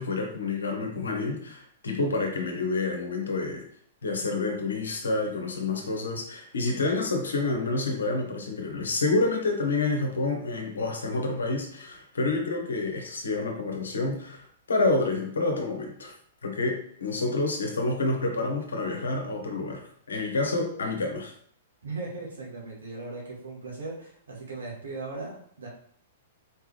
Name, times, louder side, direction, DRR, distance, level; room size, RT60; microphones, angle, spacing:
voice 1, 0.0-3.6 4.0-16.1 16.4-21.3, left 3 dB, 70° left, 2 dB, 1.0 m, -28 dB
voice 2, 21.8-25.7, right 3 dB, 70° right, -3 dB, 1.8 m, -38 dB
4.3 x 3.5 x 3.2 m, 0.63 s
figure-of-eight pair, 105°, 0 cm